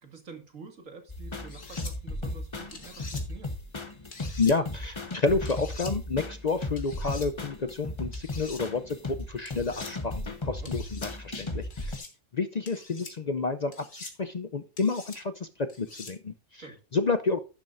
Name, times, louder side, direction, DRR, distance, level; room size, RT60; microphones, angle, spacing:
voice 1, 0.0-3.6 10.5-10.7 16.6-16.8, right 5 dB, 90° right, 5 dB, 2.5 m, -47 dB
sound 1, 1.1-12.0, left 2 dB, 25° left, 1.1 m, -36 dB
sound 2, 1.5-1.9 2.7-3.2 4.1-4.6 5.5-5.9 6.8-7.3 8.1-8.6 9.5-9.9 10.7-11.1 11.7-12.1 12.7-13.1 13.7-14.2 14.8-15.2 15.7-16.1, left 4 dB, 80° left, 2.4 m, -44 dB
voice 2, 4.4-12.1 12.3-16.7 16.9-17.4, left 4 dB, 45° left, 11 dB, 0.6 m, -30 dB
11.0 x 11.0 x 2.6 m, 0.32 s
omnidirectional pair, 1.3 m